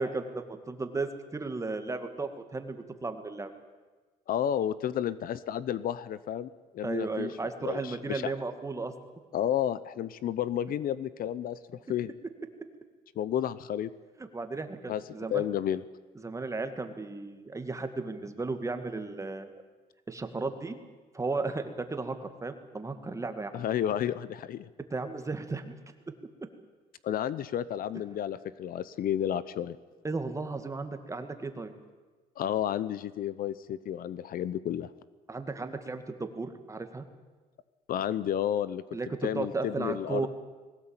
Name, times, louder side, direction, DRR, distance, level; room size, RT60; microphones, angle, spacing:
voice 1, 0.0-3.5 6.8-8.9 14.2-15.5 16.2-19.5 20.1-20.8 21.1-23.6 24.9-25.8 30.0-31.7 35.3-37.0 38.9-39.1 39.4-40.3, right 3 dB, 20° right, 8 dB, 2.1 m, -35 dB
voice 2, 4.3-7.3 7.6-8.3 9.3-12.1 13.2-13.9 14.9-15.0 15.3-15.8 23.5-24.7 27.0-29.8 32.4-34.9 37.9-38.8 39.2-40.3, left 10 dB, 60° left, 16 dB, 0.9 m, -31 dB
20.5 x 18.0 x 8.9 m, 1.3 s
cardioid pair, 110°, 17 cm